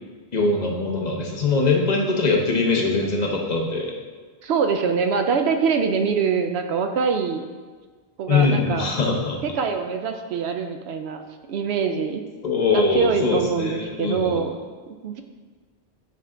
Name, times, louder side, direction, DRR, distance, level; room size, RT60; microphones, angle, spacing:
voice 1, 0.3-3.9 8.3-9.4 12.4-14.4, left 3 dB, 45° left, 0 dB, 0.9 m, -22 dB
voice 2, 4.4-7.4 8.2-8.8 9.4-11.2 11.5-12.2 12.7-14.6 15.0-15.2, right 6 dB, 80° right, 6 dB, 0.8 m, -24 dB
9.3 x 3.4 x 3.7 m, 1.4 s
omnidirectional pair, 1.1 m